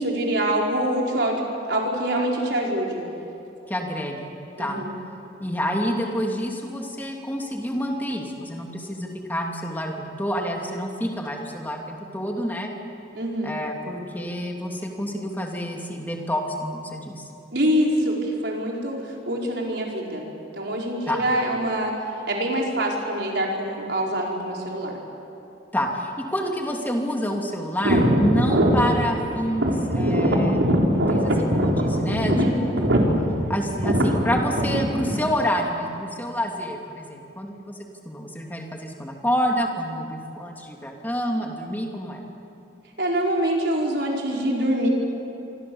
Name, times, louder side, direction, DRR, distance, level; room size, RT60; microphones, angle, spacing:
voice 1, 0.0-1.4 1.7-3.0 4.6-5.0 13.1-13.5 17.5-20.3 20.5-21.9 22.3-25.0 32.2-32.6 43.0-44.9, right 1 dB, 65° right, -1 dB, 4.9 m, -25 dB
voice 2, 3.7-4.3 4.6-4.8 5.4-12.7 13.4-17.3 21.1-21.2 25.7-33.0 33.5-37.7 38.0-42.2, equal, 10° left, 1 dB, 2.7 m, -28 dB
sound 1, 27.8-35.2, equal, 85° right, 3.6 m, -21 dB
27.0 x 25.0 x 7.2 m, 2.8 s
head